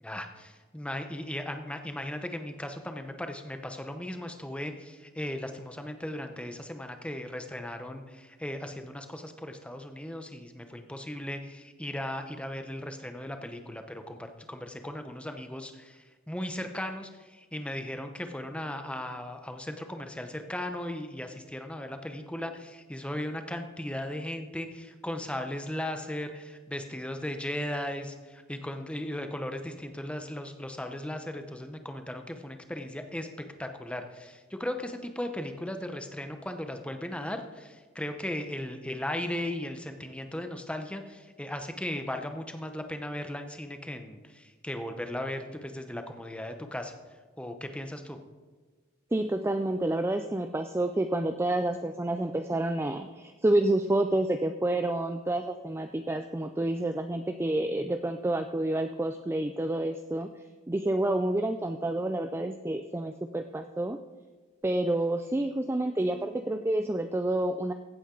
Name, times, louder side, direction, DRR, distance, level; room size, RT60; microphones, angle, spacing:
voice 1, 0.0-33.3 33.6-47.0 47.4-48.2, left 1 dB, 5° left, 6 dB, 0.8 m, -37 dB
voice 2, 49.1-60.3 60.7-64.0 64.6-67.7, right 1 dB, 10° right, 7 dB, 0.3 m, -29 dB
15.5 x 8.5 x 3.8 m, 1.4 s
head